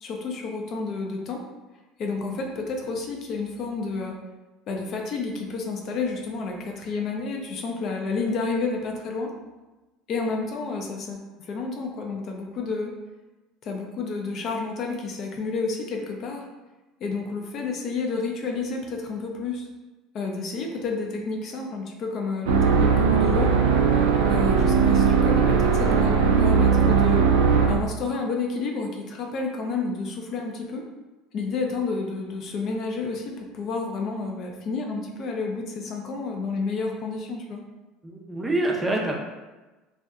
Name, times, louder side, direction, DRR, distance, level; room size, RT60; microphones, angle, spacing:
voice 1, 0.0-1.4 2.0-4.2 4.7-9.3 10.1-12.9 13.6-16.5 17.0-19.7 20.1-23.5 24.3-27.3 27.7-30.8 31.3-37.6, left 4 dB, 50° left, 1 dB, 0.4 m, -30 dB
sound 1, 22.5-27.9, right 5 dB, 85° right, 0.3 m, -19 dB
voice 2, 38.0-39.2, right 2 dB, 10° right, -1 dB, 0.4 m, -26 dB
2.6 x 2.1 x 2.4 m, 1.1 s
supercardioid pair, 105°, 0 cm